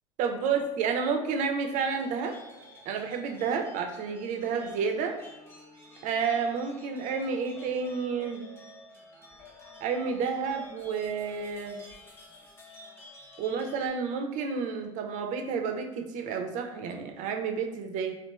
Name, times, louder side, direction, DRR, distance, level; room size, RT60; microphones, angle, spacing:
voice 1, 0.2-2.3 2.9-5.2 6.0-8.5 9.8-11.8 13.4-18.1, right 5 dB, 50° right, 4 dB, 0.5 m, -30 dB
sound 1, 1.7-13.9, left 2 dB, 15° left, 0.7 m, -50 dB
2.9 x 2.4 x 2.2 m, 0.95 s
hypercardioid pair, 85°, 17 cm